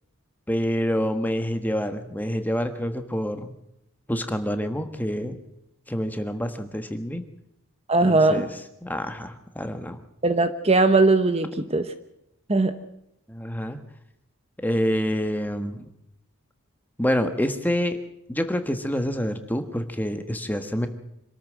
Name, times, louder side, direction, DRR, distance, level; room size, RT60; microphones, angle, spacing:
voice 1, 0.5-3.5 4.1-5.4 5.9-7.2 8.0-8.5 8.8-10.0 13.3-13.8 14.6-15.9 17.0-18.0 18.3-20.9, equal, 10° left, 7 dB, 1.4 m, -27 dB
voice 2, 7.9-8.4 10.2-11.9 12.5-12.8, right 3 dB, 25° right, 10 dB, 1.0 m, -19 dB
26.0 x 13.0 x 7.5 m, 0.80 s
head